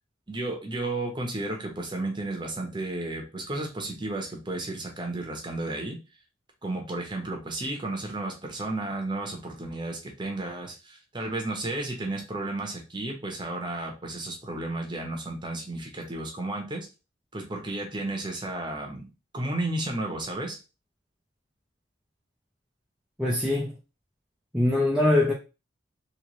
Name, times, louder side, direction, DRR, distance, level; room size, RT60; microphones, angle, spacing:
voice 1, 0.3-6.0 6.6-16.9 17.3-19.1 19.3-20.6, right 2 dB, 25° right, 0.8 m, -33 dB
voice 2, 23.2-23.7 24.5-25.3, left 1 dB, 5° right, 0.5 m, -22 dB
3.1 x 3.0 x 3.0 m
head